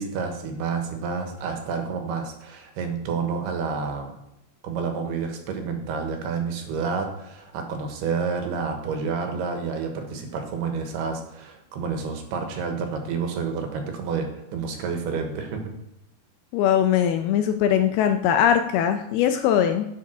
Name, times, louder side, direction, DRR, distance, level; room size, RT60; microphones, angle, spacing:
voice 1, 0.0-4.1 4.6-15.7, right 5 dB, 75° right, 4 dB, 3.1 m, -29 dB
voice 2, 16.5-19.9, left 9 dB, 80° left, 7 dB, 2.3 m, -21 dB
8.9 x 7.2 x 6.0 m, 0.81 s
omnidirectional pair, 4.9 m